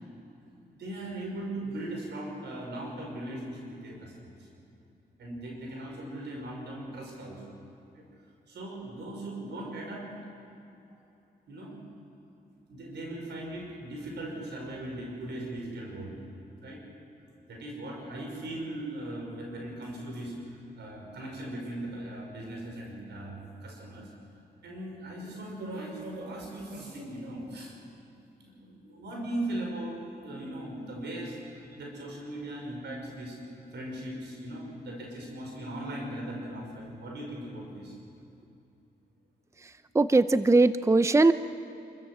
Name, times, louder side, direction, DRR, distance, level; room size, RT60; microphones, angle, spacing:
voice 1, 0.6-4.3 5.2-7.4 7.9-8.0 8.5-10.1 11.5-11.8 12.7-16.2 16.6-16.8 17.5-24.1 24.6-27.7 28.4-33.4 33.7-37.9, right 1 dB, 90° right, 0 dB, 5.5 m, -39 dB
voice 2, 39.6-41.3, right 3 dB, 15° right, 13 dB, 0.6 m, -21 dB
26.5 x 14.5 x 7.9 m, 2.8 s
cardioid pair, 60°, 18 cm